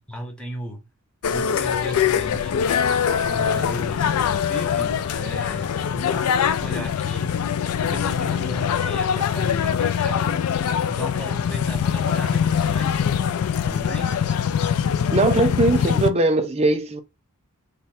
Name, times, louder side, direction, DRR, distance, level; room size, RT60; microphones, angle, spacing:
voice 1, 0.1-0.9 1.3-2.7 3.1-7.3 7.8-10.5 10.8-13.2 13.7-14.2, equal, 5° left, 0.8 m, -35 dB
sound 1, 1.2-16.1, left 8 dB, 85° left, 0.4 m, -23 dB
voice 2, 15.1-17.0, right 2 dB, 30° right, 0.5 m, -20 dB
3.3 x 2.2 x 4.1 m
head